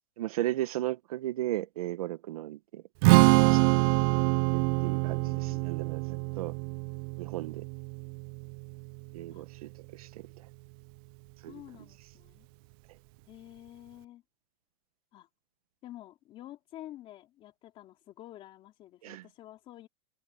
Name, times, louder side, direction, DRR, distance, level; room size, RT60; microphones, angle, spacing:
voice 1, 0.2-2.8 3.5-3.6 4.5-6.5 7.2-7.6 9.1-10.4 11.4-11.6 19.0-19.2, right 15 dB, 75° right, 1.3 m, -36 dB
Strum, 3.0-9.3, right 26 dB, 40° right, 0.4 m, -25 dB
voice 2, 4.7-5.6 9.3-9.4 11.4-12.5 13.3-14.2 15.1-15.3 15.8-19.9, left 14 dB, 30° left, 3.1 m, -49 dB
supercardioid pair, 170°, 19 cm